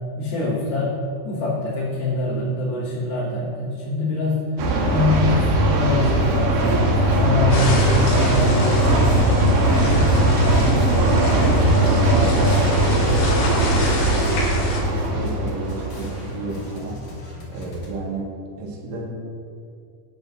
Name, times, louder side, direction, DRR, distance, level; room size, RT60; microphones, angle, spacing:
voice 1, 0.2-1.0 1.2-4.6 4.9-9.1 9.6-13.8, left 2 dB, 65° left, -12 dB, 4.0 m, -25 dB
sound 1, 4.6-16.8, right 1 dB, 70° right, 3.4 m, -19 dB
sound 2, 6.0-7.5 7.8-17.9, equal, 50° left, 3.4 m, -39 dB
sound 3, 7.5-14.8, left 2 dB, 90° left, 5.0 m, -28 dB
voice 2, 14.7-17.2 17.5-19.1, right 2 dB, 55° right, -2 dB, 2.4 m, -32 dB
18.0 x 11.0 x 2.6 m, 2.3 s
omnidirectional pair, 4.9 m